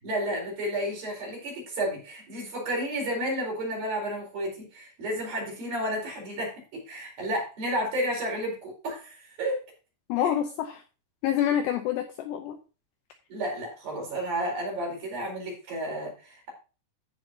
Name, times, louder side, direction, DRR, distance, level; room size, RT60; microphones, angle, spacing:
voice 1, 0.0-9.6 10.2-10.3 13.3-16.5, right 1 dB, 45° right, -2 dB, 5.9 m, -32 dB
voice 2, 10.1-10.8 11.2-12.6, left 10 dB, 80° left, 5 dB, 2.5 m, -27 dB
14.5 x 6.5 x 2.8 m, 0.33 s
omnidirectional pair, 5.7 m